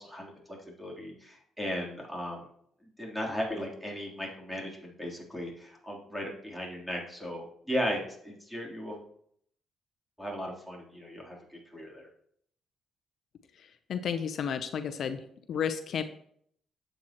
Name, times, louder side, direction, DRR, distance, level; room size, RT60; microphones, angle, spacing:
voice 1, 0.0-2.4 3.0-9.0 10.2-12.1, equal, 5° right, -2 dB, 3.4 m, -36 dB
voice 2, 13.6-15.2 15.5-16.0, left 7 dB, 65° left, 8 dB, 0.7 m, -32 dB
11.5 x 7.8 x 3.0 m, 0.66 s
cardioid pair, 90°, 0 cm